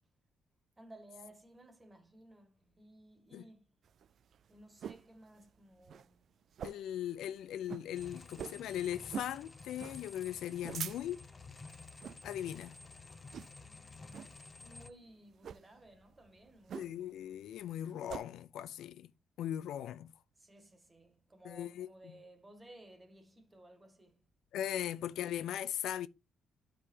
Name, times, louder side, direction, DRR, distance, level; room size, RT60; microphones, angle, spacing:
voice 1, 0.8-3.7 4.5-6.2 13.6-17.0 20.4-24.2, right 1 dB, 20° right, 2.0 m, -58 dB
sound 1, 3.9-5.1 5.5-5.6 5.8-6.1 6.5-7.0 7.3-7.4 7.6-7.9 8.3-8.7 9.1-9.4 9.8-10.0 10.4-11.3 11.9-12.2 12.6-12.9 13.3-13.7 14.1-14.3 15.3-15.6 16.7-17.1 17.5-18.2, right 8 dB, 60° right, 0.3 m, -44 dB
voice 2, 6.6-11.2 12.2-12.8 16.7-19.1 19.4-20.1 21.4-22.2 24.5-26.1, left 11 dB, 80° left, 0.5 m, -39 dB
sound 2, 7.9-14.9, left 3 dB, 30° left, 0.8 m, -52 dB
12.0 x 5.0 x 2.9 m
cardioid pair, 90°, 0 cm